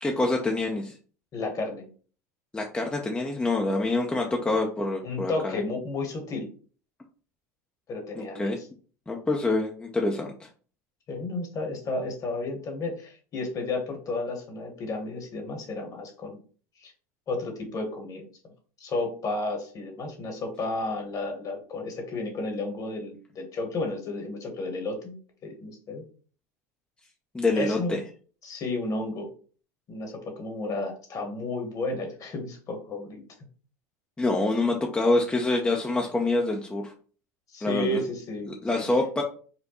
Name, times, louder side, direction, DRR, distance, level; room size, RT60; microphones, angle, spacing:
voice 1, 0.0-1.0 2.5-5.6 8.1-8.6 9.1-10.5 27.3-28.0 34.2-36.9 37.6-38.0 38.6-39.2, left 2 dB, 10° left, 1 dB, 0.6 m, -26 dB
voice 2, 1.3-1.9 4.4-4.5 5.0-6.5 7.9-8.5 11.1-16.4 16.8-16.9 17.3-18.3 18.8-25.2 25.4-26.0 27.5-27.9 28.4-29.3 29.9-33.2 37.5-38.5, left 2 dB, 40° left, 3 dB, 1.3 m, -32 dB
4.3 x 2.2 x 3.0 m, 0.40 s
hypercardioid pair, 85°, 9 cm